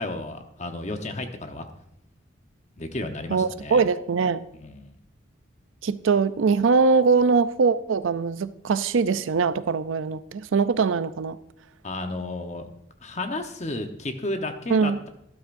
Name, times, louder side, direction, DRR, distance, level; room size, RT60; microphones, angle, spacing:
voice 1, 0.0-1.7 2.8-3.8 4.6-4.9 11.8-12.7 13.0-15.1, left 2 dB, 35° left, 6 dB, 1.0 m, -32 dB
voice 2, 3.3-4.4 5.8-11.4 14.7-15.0, right 5 dB, 85° right, 14 dB, 0.5 m, -22 dB
12.5 x 12.0 x 2.6 m, 0.79 s
head